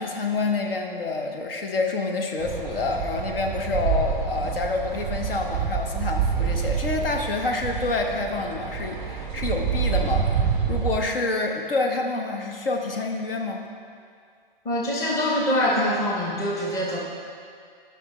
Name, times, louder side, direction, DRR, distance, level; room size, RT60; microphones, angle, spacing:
voice 1, 0.0-10.3 10.7-13.6, left 3 dB, 70° left, 2 dB, 1.0 m, -27 dB
sound 1, 2.4-11.0, right 7 dB, 10° right, 0.4 m, -27 dB
voice 2, 14.6-17.0, left 1 dB, 10° left, -3 dB, 0.8 m, -24 dB
10.5 x 5.8 x 3.1 m, 2.3 s
hypercardioid pair, 135°, 29 cm